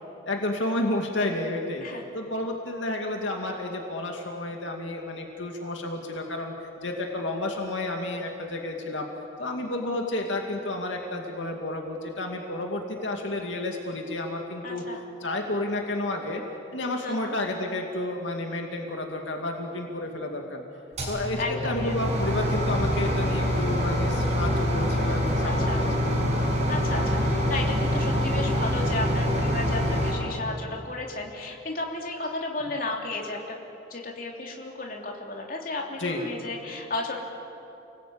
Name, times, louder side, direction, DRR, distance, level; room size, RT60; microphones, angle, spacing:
voice 1, 0.2-1.8 2.1-9.1 9.4-14.8 15.2-16.4 16.7-20.6 21.1-26.4 32.7-32.8 36.0-36.2, left 1 dB, 80° left, 2 dB, 2.3 m, -31 dB
voice 2, 14.6-15.0 17.0-17.4 21.4-22.3 25.4-25.9 26.7-33.6 33.9-37.2, left 2 dB, 45° left, 0 dB, 3.2 m, -34 dB
sound 1, 20.9-30.1, equal, 35° right, 6.8 m, -25 dB
sound 2, 25.3-30.9, equal, 20° right, 5.4 m, -45 dB
30.0 x 19.5 x 8.7 m, 2.9 s
head